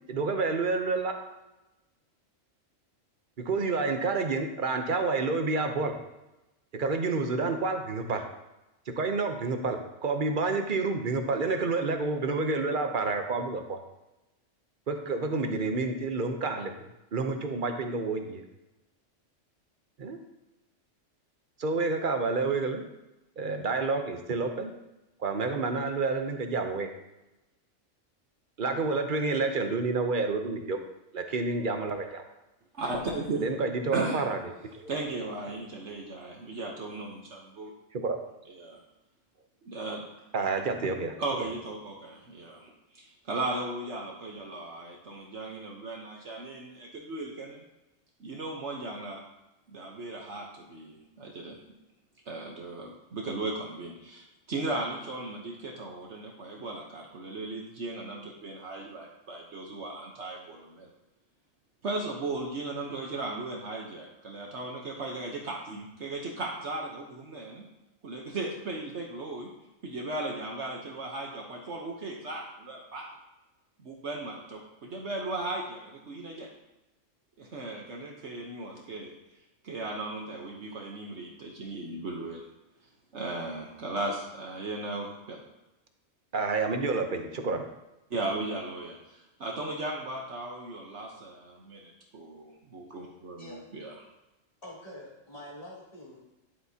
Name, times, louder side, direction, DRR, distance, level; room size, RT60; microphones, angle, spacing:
voice 1, 0.1-1.1 3.4-5.9 6.7-8.2 8.9-13.8 14.9-16.8 17.1-18.4 20.0-20.2 21.6-22.8 23.4-24.7 25.2-26.9 28.6-30.8 31.1-32.2 33.4-34.9 37.9-38.2 40.3-41.1 86.3-87.6, right 3 dB, 45° right, 5 dB, 0.9 m, -29 dB
voice 2, 32.7-33.5 33.9-34.2 34.9-37.7 38.5-38.8 39.6-40.0 41.2-47.6 48.2-49.2 49.7-51.6 52.3-60.9 61.8-67.6 68.0-69.5 69.8-73.0 73.8-76.5 77.4-79.1 79.6-82.4 83.1-85.4 88.1-93.9, right 2 dB, 60° right, -1 dB, 1.3 m, -36 dB
voice 3, 94.6-96.3, left 1 dB, 25° left, -6 dB, 3.2 m, -45 dB
11.0 x 7.9 x 2.8 m, 0.99 s
omnidirectional pair, 1.3 m